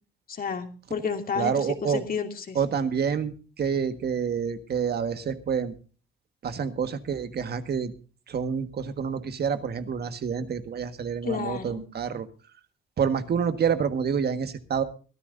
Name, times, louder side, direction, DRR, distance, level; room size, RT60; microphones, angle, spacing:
voice 1, 0.3-2.6 11.2-11.8, left 6 dB, 45° left, 4 dB, 2.6 m, -31 dB
voice 2, 1.4-2.0 2.5-5.7 6.4-7.9 8.3-12.3 13.0-14.8, right 7 dB, 55° right, 9 dB, 1.6 m, -28 dB
23.5 x 13.5 x 2.6 m, 0.37 s
cardioid pair, 90°, 20 cm